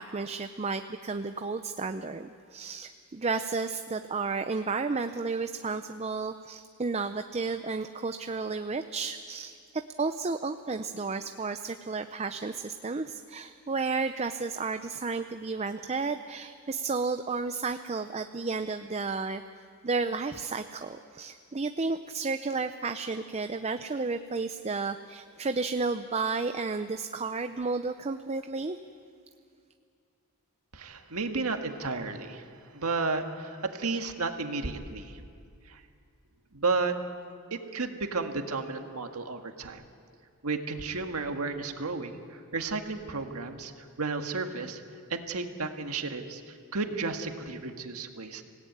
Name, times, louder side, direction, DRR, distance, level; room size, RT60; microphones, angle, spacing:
voice 1, 0.0-9.6 10.0-19.4 19.8-28.8, right 4 dB, 30° right, 9 dB, 0.6 m, -32 dB
voice 2, 30.7-32.5 32.7-35.2 35.7-35.8 36.5-37.0 37.5-39.8 40.4-43.7 44.0-44.8 45.1-48.4, right 3 dB, 80° right, 5 dB, 1.8 m, -33 dB
25.5 x 17.5 x 9.4 m, 2.3 s
head